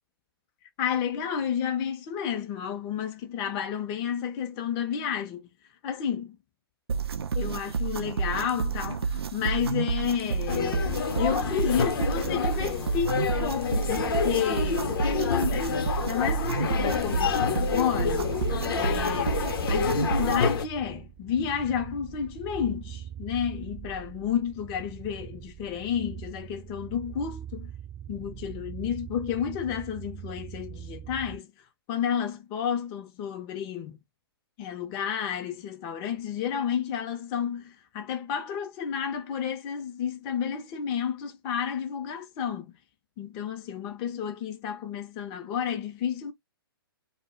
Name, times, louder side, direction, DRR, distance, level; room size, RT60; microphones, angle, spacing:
voice 1, 0.8-5.5 5.8-6.4 7.3-15.8 16.1-18.3 18.8-19.4 19.7-27.7 28.1-31.5 31.9-34.0 34.6-42.7 43.2-46.3, left 8 dB, 30° left, 0.5 m, -31 dB
sound 1, 6.9-20.5, right 6 dB, 85° right, 0.4 m, -30 dB
sound 2, 10.5-20.6, left 6 dB, 65° left, 0.7 m, -28 dB
sound 3, 16.7-31.4, right 10 dB, 20° right, 0.5 m, -42 dB
2.1 x 2.0 x 3.4 m
hypercardioid pair, 125°, 13 cm